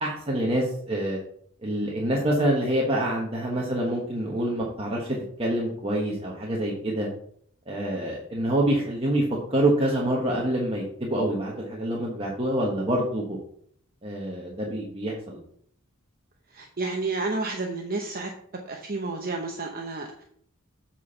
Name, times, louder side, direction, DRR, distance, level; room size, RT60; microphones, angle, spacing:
voice 1, 0.0-1.2 1.6-7.1 7.7-9.2 9.5-13.4 14.0-15.4, right 1 dB, 25° right, -3 dB, 1.2 m, -26 dB
voice 2, 16.5-18.3 18.6-20.2, right 3 dB, 45° right, 2 dB, 0.8 m, -31 dB
8.1 x 4.3 x 5.8 m, 0.65 s
head